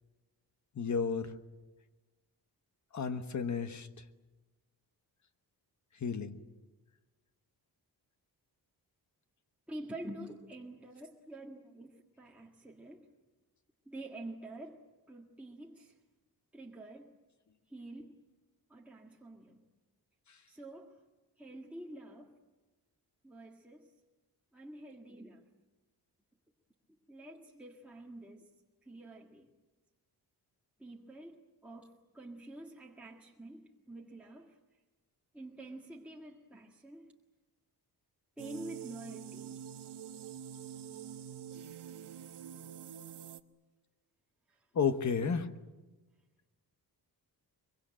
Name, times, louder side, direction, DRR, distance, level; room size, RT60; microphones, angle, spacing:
voice 1, 0.7-1.4 2.9-3.9 6.0-6.4 20.3-20.4 44.7-45.4, left 6 dB, 45° left, 9 dB, 1.3 m, -32 dB
voice 2, 9.7-13.1 13.9-14.8 15.1-16.0 16.5-17.1 17.7-18.2 18.7-19.6 20.5-21.0 21.4-22.3 23.2-23.9 24.5-25.5 27.1-28.4 28.8-29.5 30.8-34.6 35.3-37.1 38.4-39.6 44.5-44.7 45.2-45.3, right 1 dB, 5° right, -3 dB, 1.7 m, -48 dB
sound 1, 38.4-43.4, right 9 dB, 85° right, 1.1 m, -46 dB
24.0 x 23.5 x 8.9 m, 1.2 s
wide cardioid pair, 165°, 40 cm